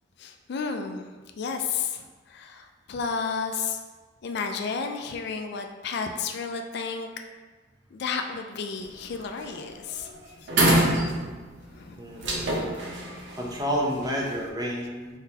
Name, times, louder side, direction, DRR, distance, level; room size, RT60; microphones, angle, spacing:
voice 1, 0.2-1.1 1.4-3.8 4.2-7.1 7.9-10.1 10.4-10.5 11.6-12.3, left 5 dB, 60° left, 5 dB, 0.4 m, -32 dB
sound 1, 8.8-9.1 9.4-9.7 10.0-10.1 10.5-11.6 12.2-14.3, right 1 dB, 65° right, 0.8 m, -25 dB
voice 2, 12.0-12.4 13.3-15.2, equal, 20° right, -2 dB, 0.7 m, -30 dB
4.5 x 3.8 x 2.8 m, 1.4 s
head